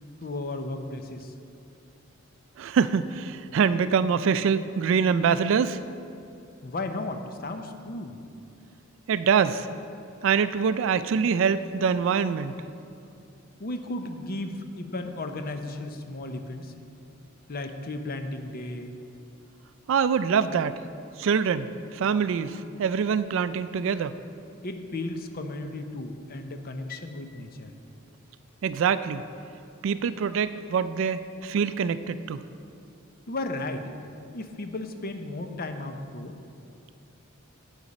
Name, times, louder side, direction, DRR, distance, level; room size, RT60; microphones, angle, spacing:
voice 1, 0.2-1.3 6.6-8.2 13.6-16.7 17.5-18.9 24.6-27.7 33.3-33.9 34.3-36.3, left 2 dB, 45° left, 6 dB, 0.7 m, -34 dB
voice 2, 2.6-5.8 9.1-9.7 10.2-12.6 19.9-20.8 21.2-24.2 28.6-29.3 29.8-32.4, right 6 dB, 65° right, 13 dB, 0.3 m, -24 dB
10.0 x 8.1 x 4.1 m, 2.6 s
head